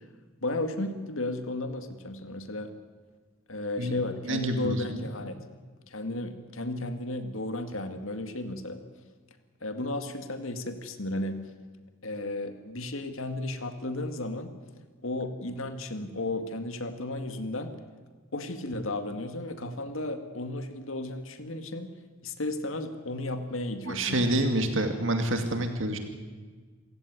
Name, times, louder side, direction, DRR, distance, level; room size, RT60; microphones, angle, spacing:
voice 1, 0.4-2.7 3.5-5.4 5.9-8.8 9.6-11.4 12.0-14.5 15.0-17.7 18.3-21.9 22.2-24.4, left 2 dB, 70° left, 8 dB, 2.1 m, -34 dB
voice 2, 4.2-5.1 23.9-26.0, right 1 dB, 60° right, 6 dB, 2.4 m, -28 dB
27.5 x 16.5 x 9.6 m, 1.5 s
head